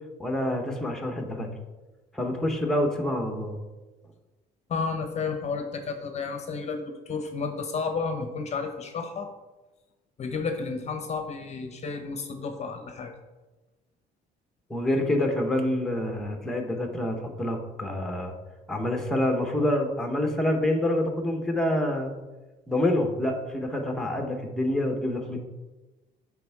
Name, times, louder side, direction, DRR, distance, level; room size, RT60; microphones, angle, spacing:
voice 1, 0.2-1.5 2.1-3.6 14.7-18.3 18.7-22.1 22.7-25.5, left 1 dB, 5° left, 3 dB, 0.9 m, -27 dB
voice 2, 4.7-9.3 10.2-13.1, left 4 dB, 40° left, 6 dB, 0.7 m, -32 dB
9.9 x 3.5 x 3.5 m, 1.2 s
cardioid pair, 110°, 17 cm